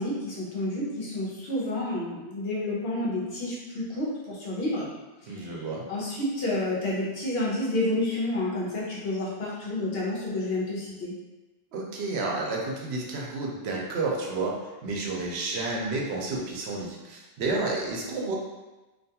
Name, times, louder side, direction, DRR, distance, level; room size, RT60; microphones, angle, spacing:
voice 1, 0.0-4.9 5.3-5.6 5.9-11.1, left 1 dB, 70° left, -5 dB, 0.9 m, -30 dB
voice 2, 5.3-5.9 11.7-18.4, right 3 dB, 85° right, -2 dB, 0.9 m, -31 dB
2.5 x 2.2 x 2.7 m, 1.1 s
omnidirectional pair, 1.1 m